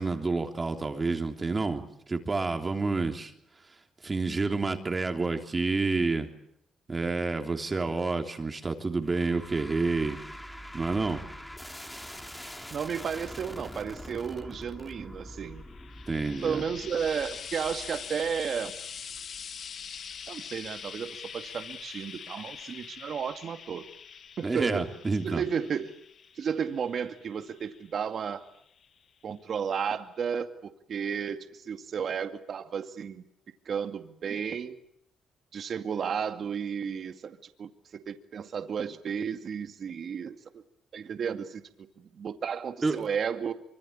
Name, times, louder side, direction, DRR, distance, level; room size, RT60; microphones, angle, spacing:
voice 1, 0.0-3.3 4.0-6.3 6.9-10.2 10.7-11.2 16.1-16.6 24.4-25.4 42.8-42.9, right 3 dB, 25° right, 5 dB, 3.4 m, -29 dB
sound 1, 9.0-20.3, equal, 5° left, 3.3 m, -45 dB
voice 2, 12.7-15.6 16.4-18.7 20.3-23.8 24.4-24.9 25.2-26.0 26.4-28.4 29.2-33.2 33.7-34.8 35.5-40.6 40.9-41.6 42.0-43.5, right 7 dB, 55° right, 8 dB, 2.2 m, -33 dB
Frying (food), 15.5-29.0 29.9-30.0, left 7 dB, 55° left, 2.0 m, -44 dB
25.0 x 25.0 x 8.9 m, 0.72 s
cardioid pair, 90°, 0 cm